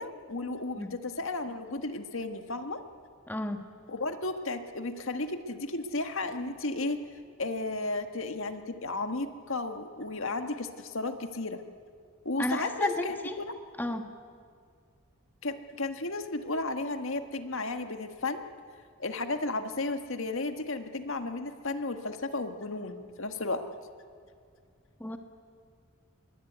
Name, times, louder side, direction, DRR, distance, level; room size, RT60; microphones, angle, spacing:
voice 1, 0.0-2.8 3.9-7.0 7.4-11.6 12.3-13.1 15.4-18.5 19.0-23.6, left 2 dB, 70° left, 7 dB, 1.7 m, -33 dB
voice 2, 3.3-3.6 12.4-13.4 13.8-14.0 25.0-25.2, left 1 dB, 10° left, 5 dB, 1.5 m, -32 dB
26.0 x 22.5 x 9.4 m, 2.2 s
head